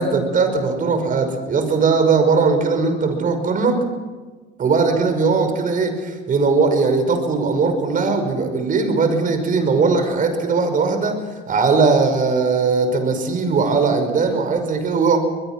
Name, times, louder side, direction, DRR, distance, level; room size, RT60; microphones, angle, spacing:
voice 1, 0.0-3.8 4.6-11.2 11.5-15.2, right 4 dB, 45° right, 7 dB, 5.6 m, -19 dB
23.0 x 21.5 x 6.2 m, 1.3 s
supercardioid pair, 85°, 20 cm